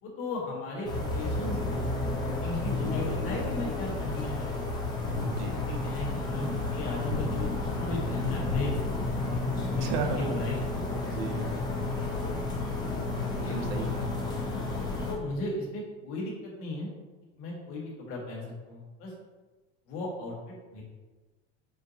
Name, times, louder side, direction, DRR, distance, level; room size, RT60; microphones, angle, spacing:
voice 1, 0.0-1.8 2.2-4.7 5.6-8.8 9.3-9.4 9.7-9.9 10.1-10.6 12.2-12.4 13.4-13.6 15.0-16.9 17.4-19.1 19.9-20.8, left 2 dB, 45° left, -3 dB, 1.3 m, -36 dB
sound 1, 0.8-15.1, left 2 dB, 15° left, 0.6 m, -31 dB
voice 2, 5.2-5.6 9.8-10.5 11.1-11.5 12.8-12.9 13.4-14.3, right 5 dB, 65° right, 4 dB, 0.7 m, -35 dB
4.5 x 2.2 x 3.8 m, 1.3 s
supercardioid pair, 145°, 31 cm